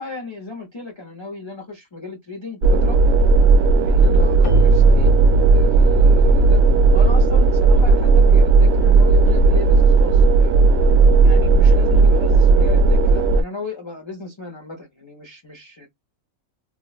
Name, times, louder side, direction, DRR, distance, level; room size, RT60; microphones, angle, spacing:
voice 1, 0.0-3.0 3.7-5.1 5.5-6.6 6.9-10.5 11.2-15.9, left 3 dB, 40° left, 0.4 m, -35 dB
sound 1, 2.6-13.4, right 3 dB, 65° right, 0.7 m, -14 dB
Keyboard (musical), 4.4-8.9, left 2 dB, 85° left, 1.0 m, -32 dB
2.8 x 2.0 x 2.3 m
omnidirectional pair, 1.4 m